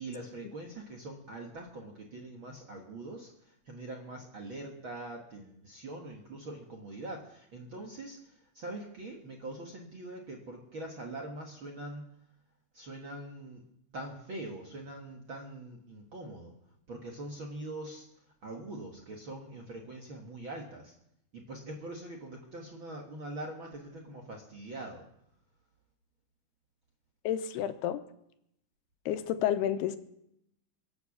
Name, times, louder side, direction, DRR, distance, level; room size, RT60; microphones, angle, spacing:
voice 1, 0.0-12.0 12.7-13.6 13.9-16.5 16.9-20.9 21.3-25.1, right 2 dB, 50° right, 1 dB, 1.6 m, -43 dB
voice 2, 27.2-28.0 29.1-30.0, left 10 dB, 90° left, 11 dB, 2.9 m, -30 dB
23.5 x 8.1 x 7.3 m, 0.77 s
omnidirectional pair, 4.6 m